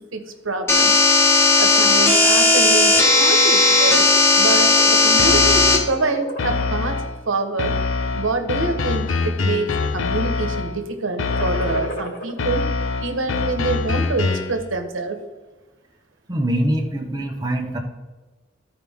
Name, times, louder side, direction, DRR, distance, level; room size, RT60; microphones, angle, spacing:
voice 1, 0.1-1.0 1.6-4.1 4.4-7.0 7.2-7.7 8.1-12.7 13.0-15.2, right 3 dB, 85° right, 6 dB, 1.1 m, -26 dB
sound 1, 0.7-5.8, left 3 dB, 15° left, 0.9 m, -15 dB
sound 2, 2.3-3.2 3.6-3.9 4.2-5.4 5.8-6.9 7.6-8.0 8.6-9.4 9.7-10.2 11.0-12.3, right 1 dB, 55° left, 2.3 m, -34 dB
sound 3, 5.2-6.0 6.4-7.2 7.6-10.8 11.2-12.0 12.4-14.6, left 4 dB, 85° left, 0.6 m, -24 dB
voice 2, 16.3-17.8, right 1 dB, 20° right, 2 dB, 0.7 m, -23 dB
13.5 x 4.8 x 3.5 m, 1.2 s
head